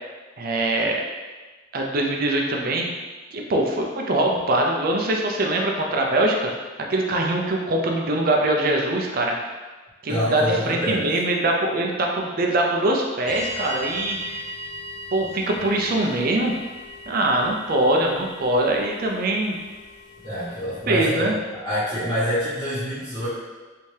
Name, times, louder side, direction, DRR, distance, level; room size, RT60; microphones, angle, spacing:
voice 1, 0.4-1.0 1.7-2.9 3.3-6.5 6.9-9.4 10.0-14.5 15.1-16.5 17.1-19.6 20.9-21.3, right 1 dB, 50° right, 1 dB, 0.4 m, -23 dB
voice 2, 10.1-11.1 20.2-23.3, equal, 15° left, -14 dB, 1.3 m, -26 dB
sound 1, 13.3-20.9, left 1 dB, 40° left, 0.5 m, -38 dB
3.3 x 2.7 x 3.2 m, 1.3 s
head